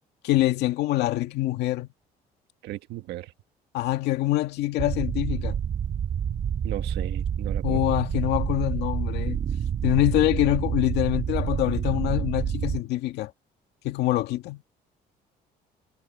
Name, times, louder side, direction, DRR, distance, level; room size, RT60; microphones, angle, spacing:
voice 1, 0.2-1.9 3.7-5.6 7.6-9.4 9.8-13.3 13.8-14.6, left 16 dB, 85° left, 2.0 m, -25 dB
voice 2, 2.6-3.3 6.6-7.8, right 15 dB, 80° right, 1.6 m, -36 dB
sound 1, 4.8-12.8, right 8 dB, 45° right, 1.3 m, -28 dB
cardioid pair, 110°, 17 cm